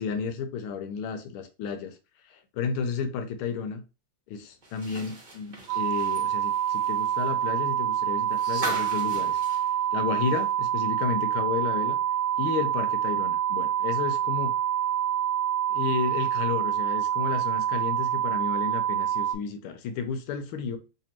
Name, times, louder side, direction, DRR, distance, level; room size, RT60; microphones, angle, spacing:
voice 1, 0.0-1.9 2.3-3.8 4.3-9.4 9.9-12.0 12.4-14.5 15.7-20.8, left 6 dB, 85° left, 1.6 m, -32 dB
sound 1, 4.6-10.7 11.0-11.1 12.5-12.6, right 2 dB, 30° right, 0.9 m, -40 dB
sound 2, 5.7-19.4, right 10 dB, 80° right, 0.9 m, -26 dB
3.4 x 3.3 x 2.8 m
omnidirectional pair, 2.3 m